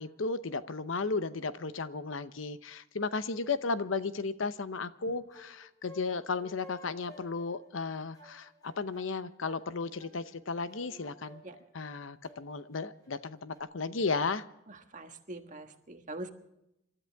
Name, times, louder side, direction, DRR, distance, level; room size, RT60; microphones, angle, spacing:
voice 1, 0.0-11.4 11.7-14.4, left 4 dB, 75° left, 13 dB, 0.8 m, -34 dB
sound 1, 5.1-13.6, left 1 dB, 20° left, 5.7 m, -55 dB
voice 2, 14.7-16.3, right 2 dB, 40° right, 5 dB, 1.6 m, -43 dB
28.0 x 13.0 x 3.5 m, 0.85 s
head